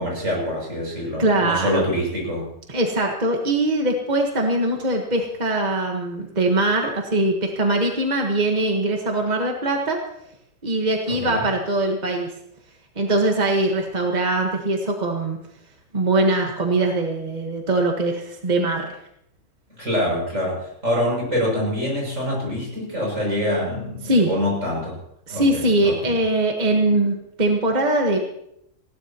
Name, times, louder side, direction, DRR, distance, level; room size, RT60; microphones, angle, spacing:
voice 1, 0.0-2.5 11.1-11.4 19.8-25.0 25.3-26.1, equal, 75° right, -3 dB, 7.5 m, -25 dB
voice 2, 1.2-1.8 2.7-10.0 10.6-12.3 13.0-15.4 15.9-18.9 24.0-24.3 25.3-28.2, right 2 dB, 35° right, 1 dB, 1.6 m, -22 dB
20.0 x 16.5 x 3.0 m, 0.76 s
omnidirectional pair, 1.3 m